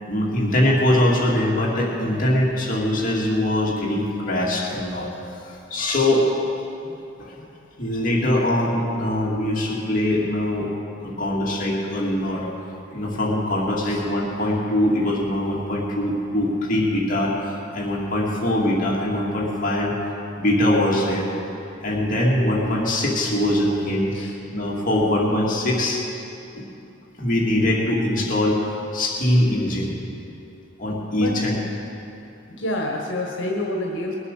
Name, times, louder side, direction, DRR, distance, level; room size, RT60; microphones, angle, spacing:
voice 1, 0.0-5.1 5.7-6.3 7.2-7.4 7.8-10.7 11.0-12.5 12.9-17.3 17.7-19.9 20.4-21.3 21.8-24.1 24.5-26.0 27.2-28.6 28.9-29.9 30.8-31.6, left 1 dB, 45° left, -4 dB, 2.4 m, -22 dB
voice 2, 32.5-34.2, left 1 dB, 70° left, 0 dB, 1.6 m, -27 dB
20.5 x 8.1 x 6.7 m, 2.8 s
head